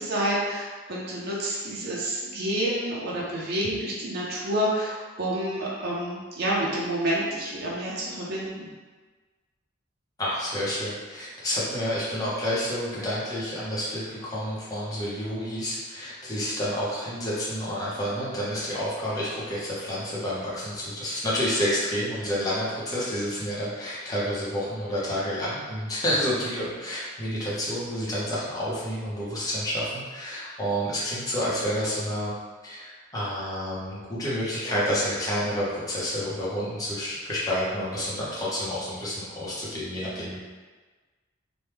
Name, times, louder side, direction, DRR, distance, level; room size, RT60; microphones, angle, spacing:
voice 1, 0.0-8.7, right 1 dB, 55° right, -5 dB, 0.6 m, -29 dB
voice 2, 10.2-32.3 32.6-40.4, equal, 20° left, -8 dB, 0.8 m, -29 dB
3.0 x 2.2 x 3.3 m, 1.3 s
head